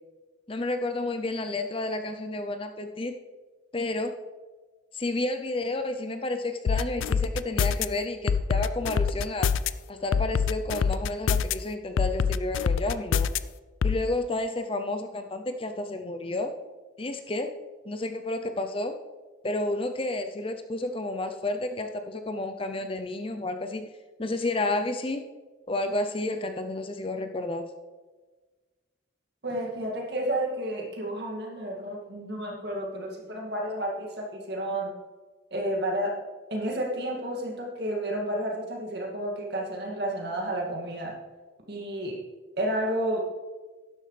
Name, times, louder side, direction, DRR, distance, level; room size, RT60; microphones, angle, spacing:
voice 1, 0.5-3.1 3.7-4.1 4.9-9.5 9.9-13.3 13.8-16.5 17.0-17.5 17.9-18.9 19.4-23.9 24.2-25.3 25.7-27.7, left 2 dB, 25° left, 7 dB, 0.5 m, -31 dB
sound 1, 6.7-7.9 8.3-9.7 10.1-11.5 12.0-13.4 13.8-14.0, left 6 dB, 75° left, 0.4 m, -24 dB
voice 2, 29.4-34.9 35.5-36.1 36.5-41.2 41.7-42.2 42.6-43.2, right 1 dB, 55° right, -1 dB, 2.3 m, -31 dB
12.0 x 11.0 x 3.3 m, 1.3 s
head